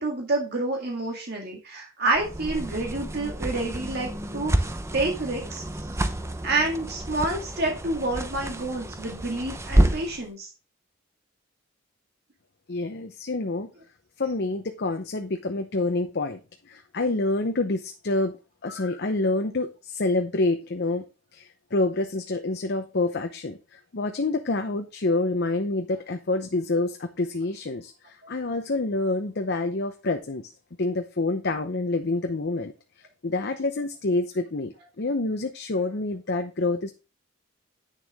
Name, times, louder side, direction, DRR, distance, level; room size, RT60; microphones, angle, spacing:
voice 1, 0.0-6.0 6.4-10.5, right 2 dB, 55° right, 1 dB, 2.0 m, -28 dB
Buttons Unbuttoning fast, 2.1-10.2, right 1 dB, 15° right, 0.8 m, -28 dB
voice 2, 12.7-13.7 14.2-16.4 16.7-18.4 18.6-21.1 21.3-30.5 30.8-32.7 33.2-36.9, left 2 dB, 55° left, 6 dB, 0.8 m, -27 dB
9.2 x 6.7 x 3.6 m, 0.31 s
head